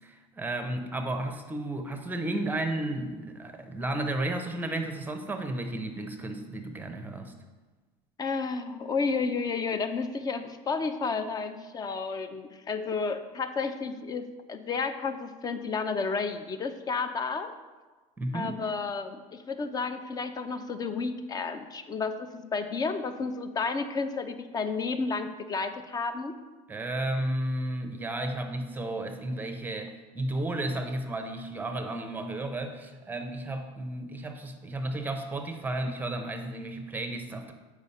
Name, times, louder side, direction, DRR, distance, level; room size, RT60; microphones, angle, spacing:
voice 1, 0.0-7.3 18.2-18.5 26.7-37.5, right 1 dB, 10° right, 6 dB, 0.8 m, -33 dB
voice 2, 8.2-17.5 18.3-26.3, left 4 dB, 25° left, 10 dB, 0.6 m, -31 dB
6.8 x 4.9 x 5.5 m, 1.3 s
supercardioid pair, 125°, 16 cm